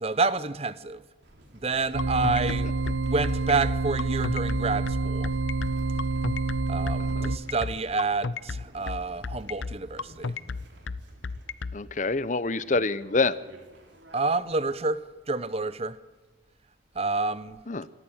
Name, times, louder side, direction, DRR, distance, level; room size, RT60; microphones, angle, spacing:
voice 1, 0.0-1.0 1.6-2.7 3.0-5.3 6.7-10.3 14.1-16.0 16.9-17.6, right 3 dB, 30° right, 0.7 m, -28 dB
sound 1, 1.2-14.5, right 1 dB, 70° right, 3.4 m, -53 dB
sound 2, 1.9-7.4, right 3 dB, 90° right, 1.0 m, -28 dB
sound 3, 2.0-11.8, left 4 dB, 85° left, 0.7 m, -33 dB
voice 2, 7.0-7.3 11.7-13.3 17.7-17.9, left 3 dB, 40° left, 0.7 m, -27 dB
25.5 x 13.5 x 8.7 m
head